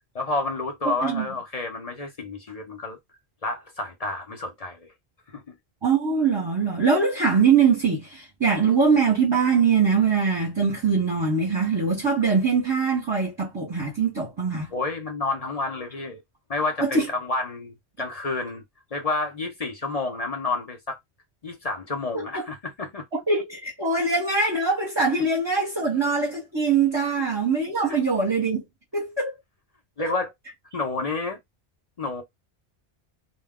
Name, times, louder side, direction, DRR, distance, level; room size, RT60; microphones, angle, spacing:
voice 1, 0.1-3.0 3.4-4.9 5.3-5.4 14.7-16.2 16.5-18.6 18.9-21.0 21.4-23.0 27.9-28.0 30.0-30.3 30.7-31.4 32.0-32.2, left 3 dB, 45° left, 0.6 m, -29 dB
voice 2, 5.8-14.7 16.8-17.1 22.1-22.4 23.3-28.6 28.9-29.3 30.0-30.1, right 5 dB, 25° right, 0.8 m, -22 dB
2.2 x 2.2 x 3.5 m
omnidirectional pair, 1.1 m